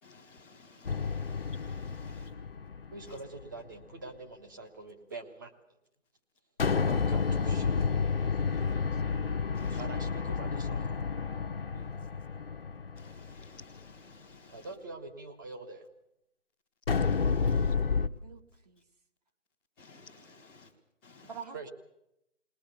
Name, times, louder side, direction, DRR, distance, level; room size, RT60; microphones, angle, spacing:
voice 1, 0.0-2.3 3.1-3.2 9.5-9.8 12.9-14.7 17.0-17.7 19.8-20.7 21.0-21.4, left 3 dB, ahead, 1.0 m, -55 dB
sound 1, 0.9-3.4 6.6-13.8 16.9-18.1, left 5 dB, 50° left, 1.0 m, -30 dB
voice 2, 2.9-5.5 6.9-8.0 9.7-11.0 14.5-15.9 21.5-21.7, right 3 dB, 15° right, 1.2 m, -45 dB
voice 3, 11.7-12.1 18.2-18.8 21.2-21.7, right 6 dB, 30° right, 1.6 m, -47 dB
21.0 x 20.5 x 6.8 m
figure-of-eight pair, 170°, 38 cm